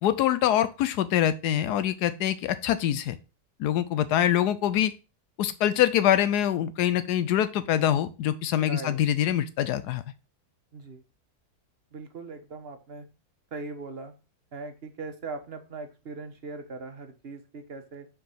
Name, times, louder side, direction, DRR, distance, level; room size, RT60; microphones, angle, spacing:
voice 1, 0.0-3.2 3.6-4.9 5.4-10.0, left 11 dB, 85° left, 13 dB, 1.2 m, -24 dB
voice 2, 8.6-9.0 10.7-11.0 11.9-13.1 13.5-14.1 14.5-18.1, right 3 dB, 40° right, 7 dB, 1.2 m, -40 dB
6.4 x 4.8 x 5.6 m, 0.30 s
omnidirectional pair, 1.7 m